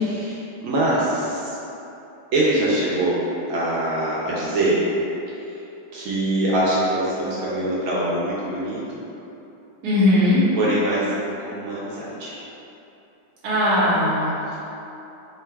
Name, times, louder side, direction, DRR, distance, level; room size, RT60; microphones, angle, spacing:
voice 1, 0.0-1.6 2.3-3.2 3.5-4.8 5.9-8.8 10.6-11.1 11.4-12.3 14.5-14.6, right 1 dB, 80° right, -7 dB, 1.5 m, -23 dB
voice 2, 9.8-10.4 13.4-14.3, left 1 dB, 55° right, -9 dB, 1.4 m, -18 dB
3.8 x 2.4 x 4.3 m, 2.9 s
omnidirectional pair, 2.3 m